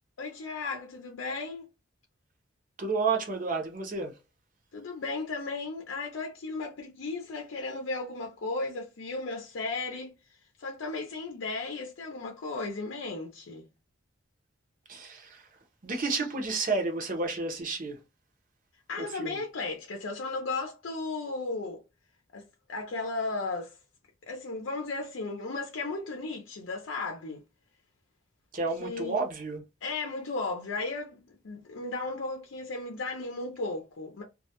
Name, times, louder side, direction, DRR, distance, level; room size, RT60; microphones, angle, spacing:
voice 1, 0.2-1.6 4.7-10.1 10.6-13.7 18.9-21.8 22.3-23.8 24.2-27.4 28.8-29.2 29.8-34.2, left 3 dB, 75° left, 0.5 m, -35 dB
voice 2, 2.8-4.1 14.9-15.4 15.8-18.0 19.0-19.4 28.5-29.6, right 4 dB, 40° right, 0.6 m, -31 dB
2.3 x 2.1 x 2.8 m
head